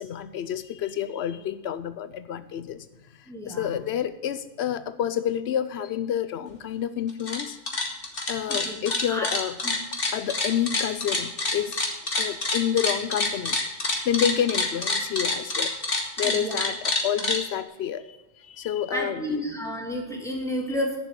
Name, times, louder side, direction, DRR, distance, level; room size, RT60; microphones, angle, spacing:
voice 1, 0.0-2.9 3.2-7.6 8.3-9.5 10.1-11.8 12.1-13.6 14.1-15.7 16.2-19.4, left 9 dB, 80° left, 13 dB, 0.9 m, -29 dB
voice 2, 3.3-3.7 8.5-8.8 9.1-9.3 9.6-9.7 16.2-16.6 18.9-21.0, equal, 5° left, -1 dB, 2.8 m, -31 dB
sound 1, 7.1-7.4 7.7-17.4, left 2 dB, 60° left, 2.0 m, -26 dB
11.0 x 7.2 x 7.6 m, 1.1 s
omnidirectional pair, 1.1 m